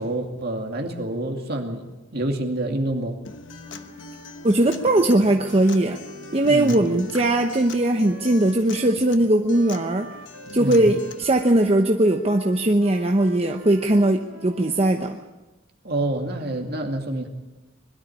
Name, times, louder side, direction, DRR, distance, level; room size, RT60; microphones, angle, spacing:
voice 1, 0.0-1.9 2.1-3.2 6.5-6.8 10.5-10.9 15.8-17.3, right 1 dB, 50° right, 3 dB, 2.5 m, -27 dB
Acoustic guitar, 3.2-11.2, left 4 dB, 65° left, 1.1 m, -41 dB
Wind instrument woodwind instrument, 3.6-9.0 9.5-15.4, right 1 dB, 85° right, 2.4 m, -45 dB
voice 2, 4.4-6.0 6.3-10.1 10.5-15.2, right 1 dB, 30° right, 4 dB, 0.9 m, -19 dB
21.5 x 13.0 x 9.7 m, 1.1 s
head